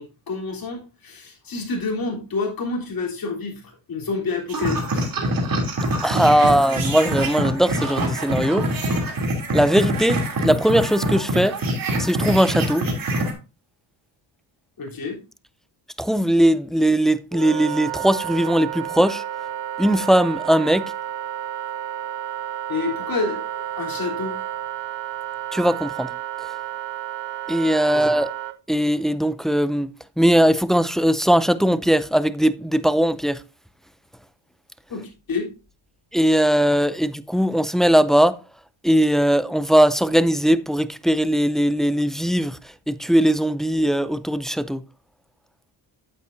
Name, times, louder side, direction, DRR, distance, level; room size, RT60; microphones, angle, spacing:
voice 1, 0.0-5.1 14.8-15.2 22.7-24.4 27.9-28.1 34.9-35.5, left 4 dB, 50° left, 3.7 m, -28 dB
sound 1, 4.5-13.3, right 1 dB, 45° right, 3.0 m, -24 dB
voice 2, 6.0-8.7 9.5-11.6 12.0-12.9 16.0-19.2 19.8-20.9 25.5-26.1 27.5-28.3 28.7-29.9 30.2-33.4 36.1-38.4 38.8-42.6 42.9-44.8, equal, ahead, 0.4 m, -19 dB
Wind instrument woodwind instrument, 17.3-28.5, right 11 dB, 70° right, 0.7 m, -31 dB
8.8 x 8.3 x 2.6 m
cardioid pair, 75°, 46 cm